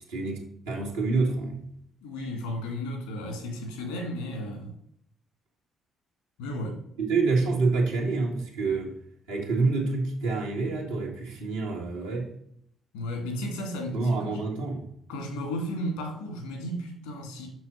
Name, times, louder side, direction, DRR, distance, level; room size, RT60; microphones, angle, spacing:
voice 1, 0.1-1.6 7.0-8.9 9.3-12.3 13.9-14.9, right 3 dB, 85° right, 1.8 m, -27 dB
voice 2, 2.0-4.7 6.4-6.8 12.9-14.4 15.1-17.5, equal, 80° left, 2.2 m, -34 dB
6.3 x 6.1 x 4.4 m
hypercardioid pair, 45°, 0 cm